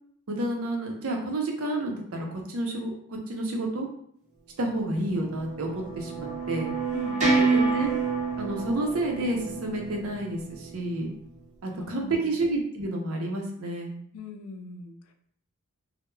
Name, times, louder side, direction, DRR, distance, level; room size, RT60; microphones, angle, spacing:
voice 1, 0.3-3.9 4.6-6.7 7.2-7.9 8.4-11.1 11.6-13.9, right 1 dB, 70° right, 1 dB, 0.6 m, -30 dB
sound 1, 4.7-11.1, right 4 dB, 35° right, 0.8 m, -29 dB
voice 2, 6.9-7.4 11.7-12.2 14.1-14.9, left 4 dB, 85° left, 6 dB, 0.4 m, -41 dB
2.2 x 2.0 x 3.0 m, 0.65 s
head